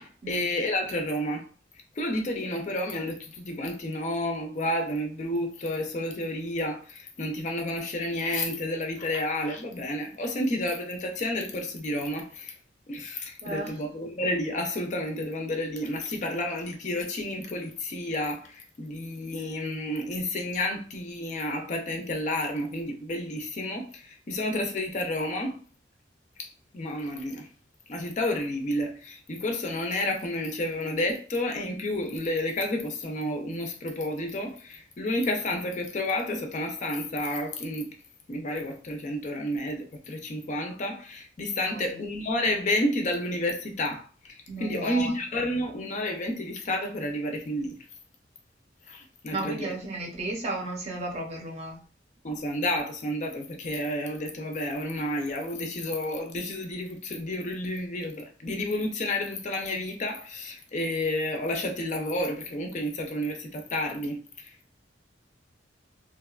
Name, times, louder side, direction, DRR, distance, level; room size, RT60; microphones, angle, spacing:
voice 1, 0.0-1.4 2.0-12.6 12.9-25.6 26.4-26.5 26.7-27.5 27.9-37.9 38.3-47.8 48.9-49.7 52.2-64.8, left 1 dB, 40° left, 0.4 m, -30 dB
voice 2, 13.4-13.8 41.6-42.1 44.5-45.2 49.3-51.8, right 2 dB, 35° right, 0.6 m, -34 dB
2.8 x 2.1 x 2.3 m
head